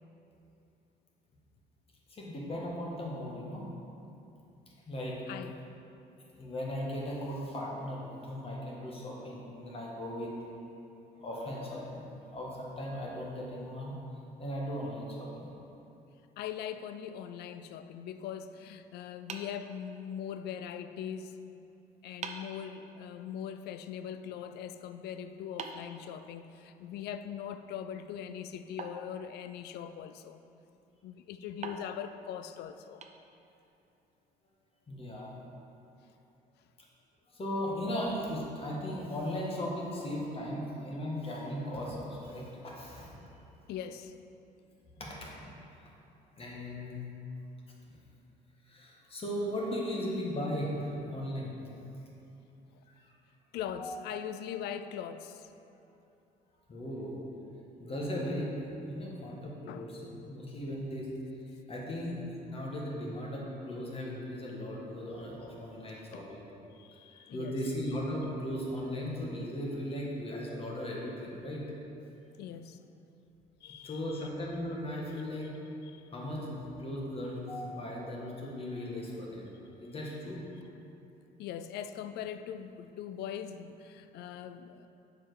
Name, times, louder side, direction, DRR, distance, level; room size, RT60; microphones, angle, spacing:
voice 1, 2.1-3.6 4.9-5.2 6.4-10.4 11.2-12.0 12.3-13.9 14.4-15.5 34.9-35.3 37.3-43.1 45.0-45.3 46.4-47.0 48.7-51.6 53.8-54.0 56.7-57.2 57.8-61.1 61.7-66.5 67.3-71.6 73.8-75.5 76.1-79.5 79.8-80.4, equal, 35° left, -3 dB, 1.5 m, -37 dB
voice 2, 16.4-21.4 22.0-30.4 31.0-33.0 43.7-44.1 53.5-55.5 59.7-59.9 66.1-66.3 66.8-67.6 72.4-72.8 73.6-74.3 75.8-76.1 81.4-84.9, left 9 dB, 75° left, 11 dB, 0.4 m, -41 dB
sound 1, 19.3-20.4 21.6-21.7 22.2-22.6 25.6-26.8 28.8-29.9 31.6-33.7, right 5 dB, 40° right, 0.6 m, -46 dB
7.0 x 5.0 x 4.8 m, 2.8 s
cardioid pair, 110°, 17 cm